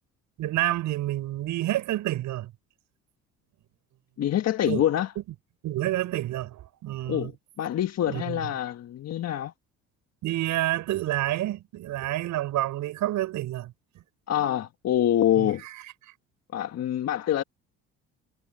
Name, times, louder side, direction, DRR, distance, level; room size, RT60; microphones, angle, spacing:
voice 1, 0.4-2.5 4.7-4.8 5.6-7.3 8.1-8.4 10.2-13.7 15.4-15.5, right 14 dB, 70° right, 6.0 m, -28 dB
voice 2, 4.2-5.1 7.1-7.3 7.6-9.5 14.3-15.6 16.5-17.4, left 11 dB, 55° left, 1.5 m, -25 dB
supercardioid pair, 70°, 32 cm